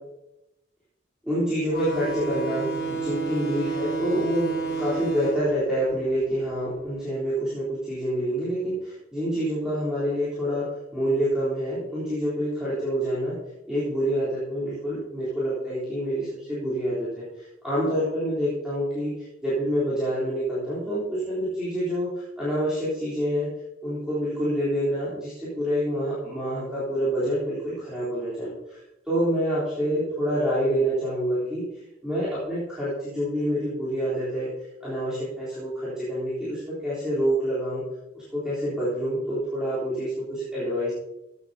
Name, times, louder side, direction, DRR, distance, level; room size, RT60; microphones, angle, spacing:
voice 1, 1.2-4.5 4.8-13.4 13.7-23.5 23.8-34.5 34.8-37.8 38.1-40.9, equal, 5° right, -12 dB, 3.6 m, -27 dB
sound 1, 1.7-6.9, right 4 dB, 45° left, 3.1 m, -30 dB
14.5 x 9.3 x 2.8 m, 0.90 s
head